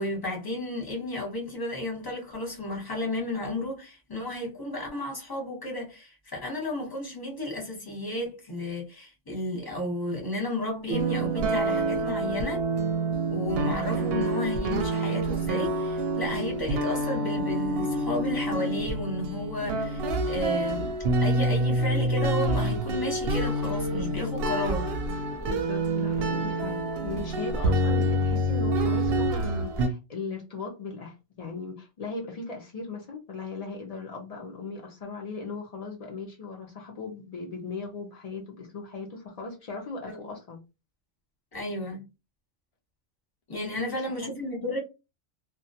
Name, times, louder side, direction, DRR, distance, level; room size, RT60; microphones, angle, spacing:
voice 1, 0.0-12.6 13.3-20.9 21.2-24.9 40.1-40.2 41.5-42.0 43.5-44.8, left 1 dB, 20° left, 0.8 m, -33 dB
sound 1, 10.9-29.9, right 1 dB, 65° right, 0.7 m, -27 dB
voice 2, 25.4-40.6 43.6-44.4, left 4 dB, 65° left, 0.3 m, -38 dB
2.2 x 2.2 x 2.6 m
omnidirectional pair, 1.3 m